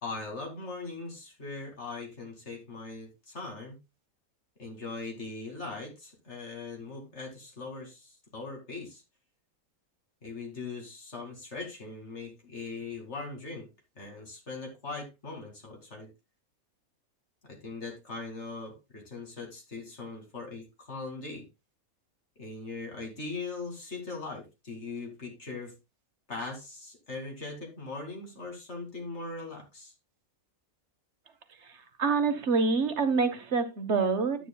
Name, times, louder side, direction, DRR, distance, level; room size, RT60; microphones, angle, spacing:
voice 1, 0.0-3.8 4.6-9.0 10.2-13.7 14.0-16.1 17.4-21.5 22.4-25.8 26.3-29.9, left 3 dB, 50° left, 3 dB, 2.6 m, -40 dB
voice 2, 31.6-34.5, right 4 dB, 55° right, 9 dB, 1.2 m, -27 dB
10.0 x 9.4 x 2.2 m, 0.22 s
omnidirectional pair, 1.5 m